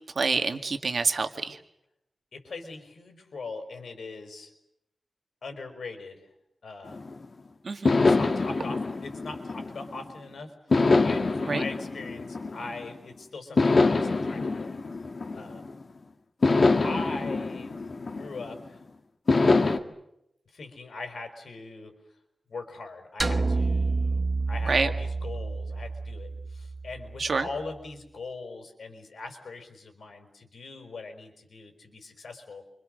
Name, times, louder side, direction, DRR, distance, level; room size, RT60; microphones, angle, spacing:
voice 1, 0.2-1.6 7.6-7.9 11.5-11.6 24.7-24.9 27.2-27.5, right 4 dB, 60° right, 7 dB, 2.1 m, -27 dB
voice 2, 2.3-4.5 5.4-6.3 6.6-7.1 8.0-14.8 15.3-15.7 16.8-18.9 20.5-22.2 22.5-32.7, left 3 dB, 85° left, 6 dB, 5.2 m, -41 dB
sound 1, 6.9-7.3 7.8-10.1 10.7-13.0 13.6-15.8 16.4-18.7 19.3-19.8, left 3 dB, 50° left, 1.8 m, -25 dB
sound 2, 23.2-27.6, right 3 dB, 30° right, 1.2 m, -29 dB
29.5 x 25.5 x 6.6 m, 0.81 s
wide cardioid pair, 110°, 0 cm